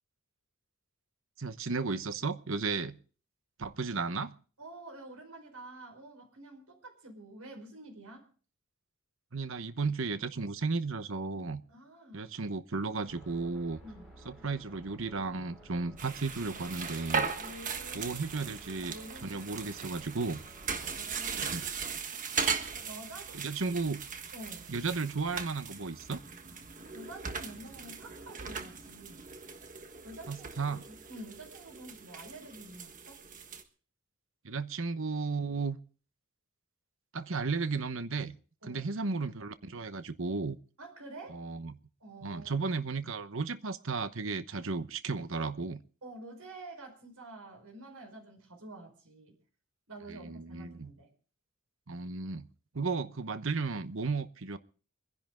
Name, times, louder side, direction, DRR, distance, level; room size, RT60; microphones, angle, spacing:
voice 1, 1.4-3.0 3.6-4.3 9.3-11.6 12.1-13.8 14.2-17.3 17.9-18.9 19.2-20.4 21.4-21.6 23.3-24.0 24.7-26.2 30.3-30.8 34.4-35.8 37.1-38.3 38.6-40.6 41.3-41.8 42.2-45.8 50.1-50.9 51.9-52.5 52.7-54.6, right 4 dB, 60° right, 0.9 m, -34 dB
voice 2, 4.6-8.3 11.7-12.3 13.8-14.1 17.2-20.1 20.8-21.6 22.8-23.6 24.3-24.8 26.9-29.3 30.0-33.2 38.6-38.9 40.8-41.4 42.0-42.6 46.0-49.4 49.9-51.1, right 2 dB, 85° right, 4.9 m, -49 dB
sound 1, 13.0-21.0, right 1 dB, ahead, 6.1 m, -54 dB
sound 2, 16.0-33.6, right 5 dB, 35° right, 1.4 m, -39 dB
25.5 x 10.5 x 3.8 m
head